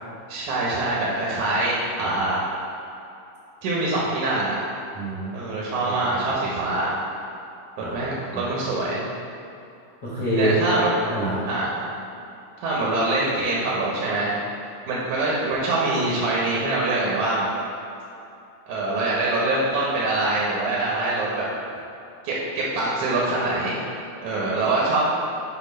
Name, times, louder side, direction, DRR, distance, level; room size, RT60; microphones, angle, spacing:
voice 1, 0.3-2.4 3.6-4.6 5.3-6.9 7.8-9.1 10.4-10.9 11.5-11.7 12.6-14.4 14.9-17.5 18.7-21.5 22.2-23.8 24.2-25.0, right 2 dB, 70° right, -5 dB, 2.3 m, -24 dB
voice 2, 4.9-5.3 5.8-6.4 7.8-8.0 8.3-8.4 10.0-10.5 11.1-11.4, right 1 dB, 50° left, -11 dB, 1.3 m, -27 dB
8.4 x 3.2 x 5.2 m, 2.7 s
omnidirectional pair, 3.7 m